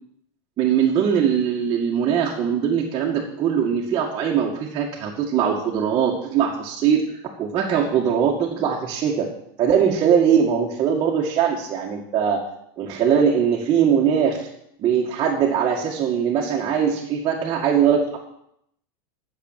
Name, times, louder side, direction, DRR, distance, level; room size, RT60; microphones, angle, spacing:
voice 1, 0.6-7.0 7.4-9.3 9.6-12.4 12.8-14.5 14.8-18.2, right 8 dB, 35° right, -3 dB, 2.0 m, -21 dB
12.0 x 7.4 x 7.6 m, 0.73 s
supercardioid pair, 140°, 13 cm